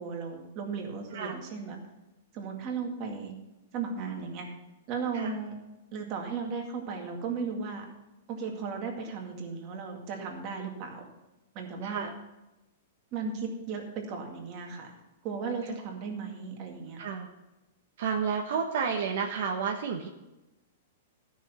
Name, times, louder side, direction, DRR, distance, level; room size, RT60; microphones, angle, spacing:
voice 1, 0.0-1.8 2.3-3.3 3.7-4.5 4.9-5.6 5.9-7.9 8.3-11.1 11.5-12.1 13.1-15.0 15.2-17.0, right 5 dB, 30° right, 1 dB, 2.1 m, -35 dB
voice 2, 11.8-12.1 17.0-17.3 18.0-20.1, right 6 dB, 55° right, 2 dB, 1.2 m, -31 dB
13.5 x 6.3 x 7.1 m, 1.0 s
supercardioid pair, 175°, 0 cm